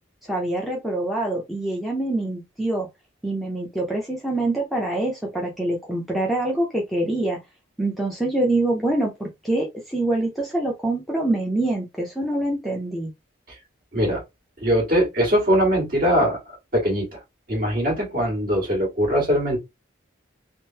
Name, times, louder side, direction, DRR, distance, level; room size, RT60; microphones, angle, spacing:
voice 1, 0.2-2.9 3.2-7.4 7.8-13.1, right 2 dB, ahead, 0.6 m, -25 dB
voice 2, 14.6-17.2 17.5-19.6, equal, 45° right, 1.7 m, -21 dB
3.6 x 2.0 x 2.7 m
head